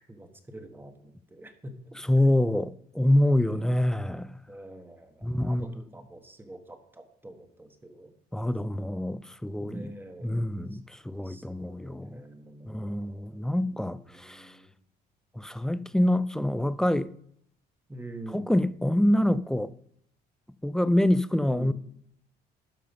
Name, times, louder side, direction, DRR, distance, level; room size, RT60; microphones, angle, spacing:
voice 1, 0.1-1.7 3.4-3.7 4.5-8.1 9.6-10.8 11.1-13.4 13.6-14.7 17.9-18.5 21.4-21.7, right 1 dB, 10° right, 1.4 m, -45 dB
voice 2, 2.1-4.4 5.2-5.7 8.3-9.9 10.2-12.2 12.7-14.5 15.4-17.1 18.3-19.7 20.6-21.7, left 1 dB, 5° left, 0.3 m, -26 dB
12.0 x 5.5 x 5.3 m
cardioid pair, 110°, 17 cm